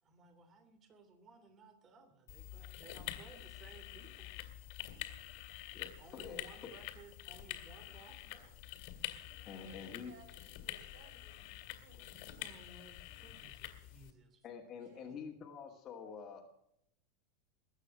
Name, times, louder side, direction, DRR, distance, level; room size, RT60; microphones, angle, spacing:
voice 1, 0.0-4.3 6.0-8.6 12.2-14.4, right 4 dB, 25° right, 8 dB, 3.1 m, -59 dB
sound 1, 2.3-14.1, left 14 dB, 55° left, 2.6 m, -47 dB
voice 2, 4.8-5.3 9.5-12.5 14.8-15.2, right 3 dB, 60° right, 6 dB, 5.6 m, -63 dB
voice 3, 5.7-6.7 9.4-10.1 14.4-16.4, left 6 dB, 25° left, -3 dB, 2.5 m, -47 dB
22.0 x 9.0 x 6.2 m, 0.74 s
supercardioid pair, 155°, 0 cm